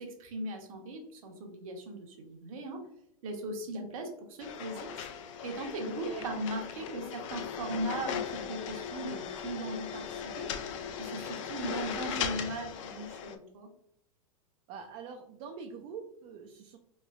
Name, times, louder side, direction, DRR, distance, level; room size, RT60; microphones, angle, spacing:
voice 1, 0.0-2.8 3.2-4.9 5.4-10.0 10.4-10.5 11.0-13.7, right 1 dB, 70° right, 3 dB, 0.9 m, -38 dB
sound 1, 4.4-13.4, left 8 dB, 60° left, 0.4 m, -38 dB
voice 2, 14.7-16.8, right 6 dB, 40° right, 2 dB, 0.4 m, -44 dB
3.1 x 3.0 x 2.3 m, 0.74 s
hypercardioid pair, 130°, 18 cm